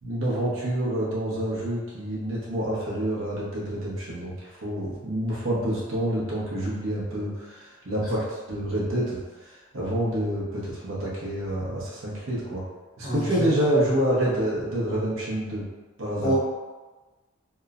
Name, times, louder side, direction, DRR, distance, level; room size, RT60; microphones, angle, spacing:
voice 1, 0.0-12.6 13.0-15.6 16.0-16.3, right 1 dB, 70° right, -7 dB, 0.7 m, -28 dB
voice 2, 13.0-13.5 16.2-16.3, equal, 75° left, -9 dB, 1.1 m, -27 dB
3.0 x 2.0 x 2.4 m, 1.2 s
head